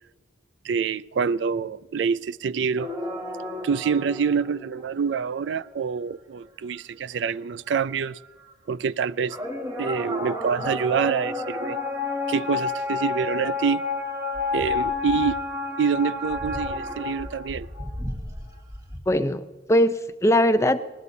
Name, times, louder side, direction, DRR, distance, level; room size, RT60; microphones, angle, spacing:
voice 1, 0.6-2.9 3.6-8.2 8.7-9.4 9.8-11.8 12.3-13.8 14.5-15.4 15.8-17.7, right 6 dB, 85° right, 0.4 m, -26 dB
sound 1, 2.8-5.4 8.5-8.6 9.3-19.0, left 3 dB, 20° right, 1.6 m, -30 dB
voice 2, 19.1-20.8, left 1 dB, 15° left, 0.5 m, -21 dB
20.5 x 19.0 x 2.7 m
head